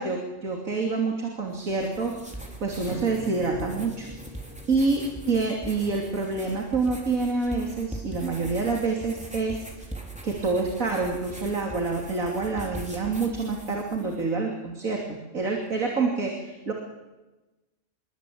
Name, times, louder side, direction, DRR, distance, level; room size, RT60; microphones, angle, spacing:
voice 1, 0.0-2.2 2.6-4.1 4.7-9.6 10.2-16.7, right 3 dB, 75° right, 1 dB, 3.3 m, -27 dB
sound 1, 1.5-14.2, right 1 dB, 5° right, 4.2 m, -41 dB
sound 2, 2.9-7.2, left 3 dB, 55° left, 3.0 m, -45 dB
27.0 x 23.0 x 8.6 m, 1.1 s
omnidirectional pair, 1.4 m